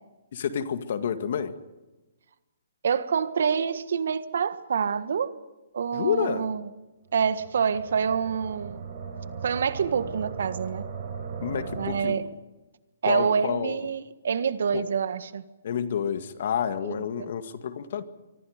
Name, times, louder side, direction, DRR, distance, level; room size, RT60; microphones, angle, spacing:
voice 1, 0.3-1.5 5.9-6.5 11.4-12.2 13.0-13.8 14.7-14.8 15.6-18.0, left 8 dB, 55° left, 9 dB, 2.0 m, -29 dB
voice 2, 2.8-5.3 5.7-6.7 7.1-8.8 9.4-10.8 11.8-12.2 13.0-15.4 16.8-17.3, right 6 dB, 65° right, 12 dB, 1.5 m, -27 dB
sound 1, 7.1-12.0, right 6 dB, 45° right, 6.5 m, -38 dB
25.0 x 24.5 x 5.1 m, 1.1 s
hypercardioid pair, 160°, 0 cm